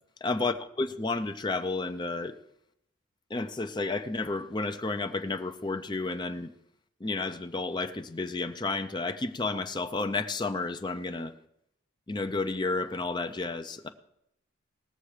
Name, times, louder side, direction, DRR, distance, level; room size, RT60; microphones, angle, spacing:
voice 1, 0.2-2.3 3.3-6.5 7.0-11.3 12.1-13.9, left 3 dB, 20° left, 0.6 m, -31 dB
19.5 x 6.8 x 5.0 m
head